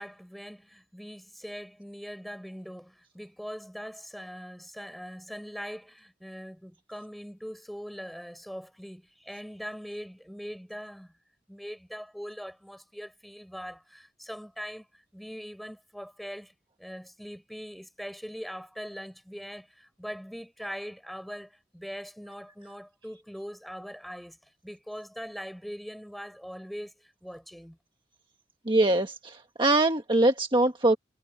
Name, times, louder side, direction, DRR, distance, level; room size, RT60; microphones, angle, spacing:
voice 1, 0.0-11.1 11.5-27.8, equal, ahead, 4.6 m, -41 dB
voice 2, 28.6-31.0, right 2 dB, 30° right, 1.4 m, -23 dB
head